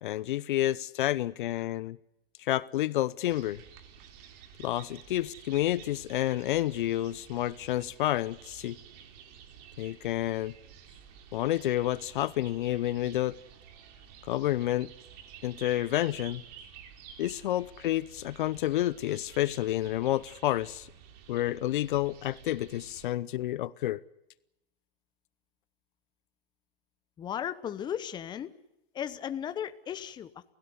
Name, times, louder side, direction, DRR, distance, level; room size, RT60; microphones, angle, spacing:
voice 1, 0.0-2.0 2.4-3.6 4.6-8.8 9.8-10.5 11.3-13.4 14.2-14.9 15.4-16.4 17.2-20.9 21.3-24.0, left 14 dB, 55° left, 0.8 m, -29 dB
sound 1, 3.3-23.1, right 8 dB, 40° right, 3.3 m, -51 dB
voice 2, 27.2-28.5 28.9-30.5, left 9 dB, 15° left, 0.9 m, -36 dB
28.5 x 16.5 x 8.3 m
hypercardioid pair, 140°, 30 cm